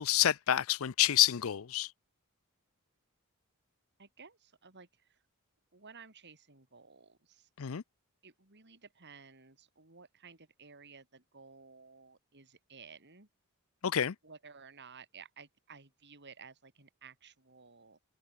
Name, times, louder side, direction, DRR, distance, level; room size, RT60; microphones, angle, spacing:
voice 1, 0.0-1.9 7.6-7.8 13.8-14.2, left 12 dB, 65° left, 0.5 m, -28 dB
voice 2, 4.0-5.2 5.7-7.5 8.2-13.3 14.2-18.0, right 5 dB, 50° right, 3.7 m, -55 dB
open air
head